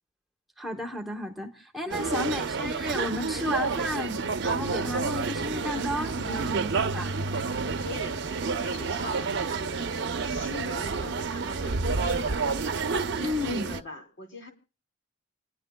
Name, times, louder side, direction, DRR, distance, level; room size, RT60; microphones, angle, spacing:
voice 1, 0.6-7.1 13.2-13.7, left 1 dB, ahead, 0.7 m, -33 dB
sound 1, 1.9-13.8, right 4 dB, 55° right, 0.6 m, -29 dB
voice 2, 7.4-12.4 13.0-14.5, left 1 dB, 60° left, 3.0 m, -42 dB
29.0 x 10.0 x 2.2 m
head